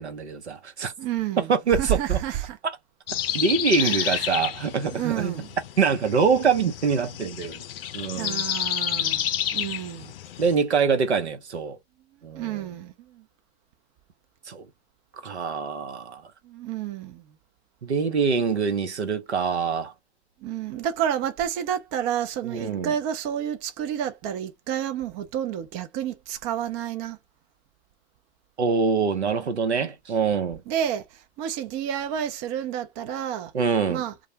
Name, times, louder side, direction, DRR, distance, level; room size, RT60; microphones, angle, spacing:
voice 1, 0.0-0.9 1.5-2.2 3.3-5.3 5.8-7.6 7.9-8.4 10.4-11.8 12.2-12.6 14.5-14.6 15.2-16.2 17.8-19.9 22.4-22.9 28.6-30.6 33.5-34.0, right 5 dB, 85° right, 0.8 m, -24 dB
voice 2, 1.0-2.6 3.8-4.4 4.9-5.6 8.1-9.3 9.5-10.1 12.4-13.2 16.4-17.2 20.4-27.2 30.7-33.5 33.9-34.1, right 10 dB, 30° right, 0.5 m, -30 dB
sound 1, 3.1-10.5, left 10 dB, 60° left, 0.5 m, -30 dB
2.3 x 2.0 x 2.7 m
figure-of-eight pair, 105°, 33 cm